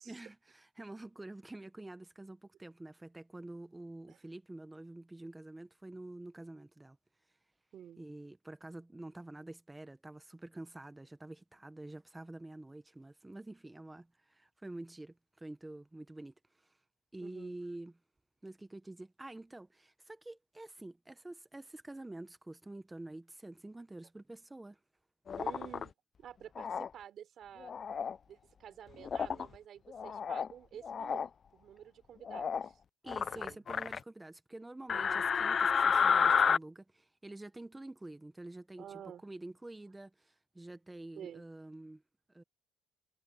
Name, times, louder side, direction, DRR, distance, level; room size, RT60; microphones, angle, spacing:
voice 1, 0.1-7.0 8.0-16.3 17.1-18.0 18.4-24.8 33.0-42.0 42.3-42.4, right 2 dB, 10° right, 1.2 m, -48 dB
voice 2, 7.7-8.0 17.2-17.6 25.4-25.9 26.2-27.7 28.3-32.8 33.4-33.6 34.9-35.3 38.8-39.2 41.2-41.4, right 9 dB, 50° right, 4.7 m, -50 dB
sound 1, 25.3-25.8 26.6-26.9 27.6-28.2 29.0-29.5 29.9-30.5 30.8-31.3 32.3-32.7 33.1-34.0 34.9-36.6, left 6 dB, 35° left, 0.5 m, -30 dB
cardioid pair, 125°, 0 cm